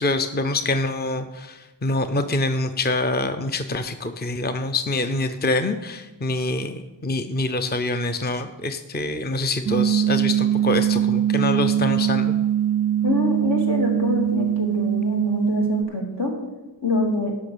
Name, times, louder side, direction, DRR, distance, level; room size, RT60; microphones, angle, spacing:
voice 1, 0.0-12.3, left 2 dB, 20° left, 8 dB, 0.6 m, -25 dB
sound 1, 9.6-15.8, right 10 dB, 35° right, 0.4 m, -22 dB
voice 2, 13.0-16.3 16.8-17.3, left 2 dB, 70° left, 0 dB, 2.6 m, -25 dB
11.5 x 6.0 x 6.9 m, 1.1 s
wide cardioid pair, 75°, 44 cm